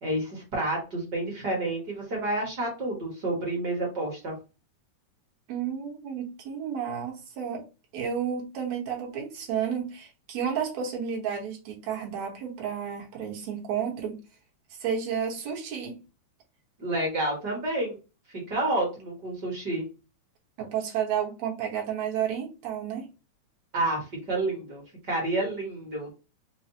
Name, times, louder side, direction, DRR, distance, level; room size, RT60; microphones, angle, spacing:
voice 1, 0.0-4.3 16.8-18.0 18.5-19.9 23.7-24.8 25.1-26.1, right 2 dB, 40° right, 1.6 m, -29 dB
voice 2, 5.5-7.7 7.9-14.2 14.7-16.0 20.6-23.1, right 8 dB, 65° right, 2.4 m, -31 dB
5.5 x 2.2 x 2.8 m
omnidirectional pair, 3.5 m